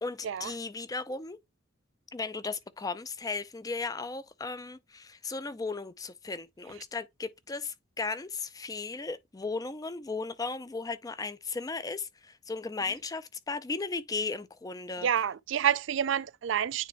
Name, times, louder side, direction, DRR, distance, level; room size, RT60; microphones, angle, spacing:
voice 1, 0.0-1.4 2.1-15.1, left 4 dB, 20° left, 0.4 m, -36 dB
voice 2, 15.0-16.9, right 9 dB, 65° right, 0.4 m, -28 dB
9.3 x 3.3 x 3.1 m
head